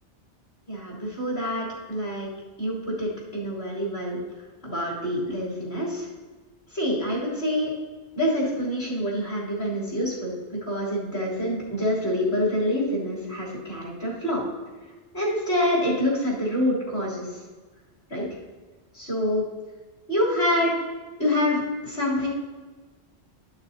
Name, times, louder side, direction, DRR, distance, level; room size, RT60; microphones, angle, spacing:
voice 1, 0.7-2.3 2.6-4.2 4.6-6.1 6.7-7.7 8.2-14.4 15.1-17.3 18.1-18.3 18.9-19.4 20.1-20.7 21.2-22.3, left 1 dB, 60° left, -8 dB, 3.6 m, -26 dB
13.5 x 6.8 x 2.8 m, 1.3 s
omnidirectional pair, 1.2 m